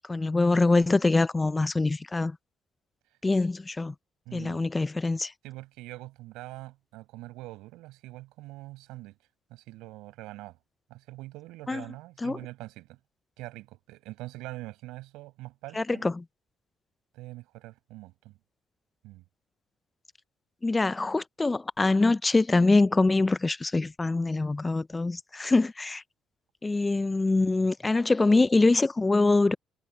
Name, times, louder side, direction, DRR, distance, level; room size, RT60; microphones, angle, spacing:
voice 1, 0.1-2.4 3.2-3.9 4.3-5.3 11.7-11.8 12.2-12.4 15.7-16.2 20.6-26.0 26.6-29.5, left 3 dB, 25° left, 0.9 m, -24 dB
voice 2, 4.2-4.7 5.4-9.2 9.5-10.6 10.9-13.0 13.4-16.1 17.1-18.4 19.0-19.2, right 19 dB, 75° right, 6.7 m, -44 dB
hypercardioid pair, 50°, 0 cm